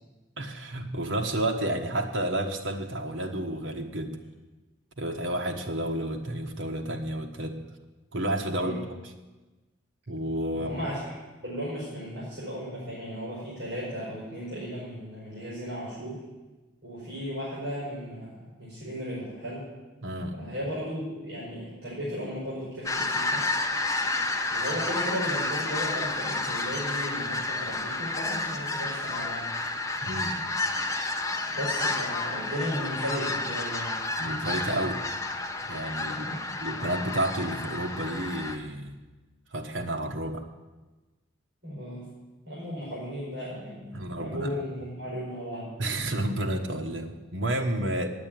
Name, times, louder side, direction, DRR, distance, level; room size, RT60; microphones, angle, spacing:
voice 1, 0.4-4.2 5.0-7.6 8.1-8.8 9.0-9.1 10.1-10.9 20.0-20.4 30.0-30.4 34.2-35.0 35.7-36.3 36.6-39.0 39.5-40.4 43.9-44.5 45.8-48.1, right 1 dB, 80° right, 4 dB, 1.3 m, -31 dB
voice 2, 8.5-8.9 10.5-11.1 11.4-16.2 16.8-19.7 20.3-23.5 24.5-29.5 31.5-34.0 35.9-36.6 41.6-42.1 42.4-45.7, equal, 60° right, -7 dB, 5.3 m, -35 dB
sound 1, 22.8-38.6, left 2 dB, 15° left, 0.7 m, -30 dB
9.5 x 8.5 x 9.0 m, 1.2 s
head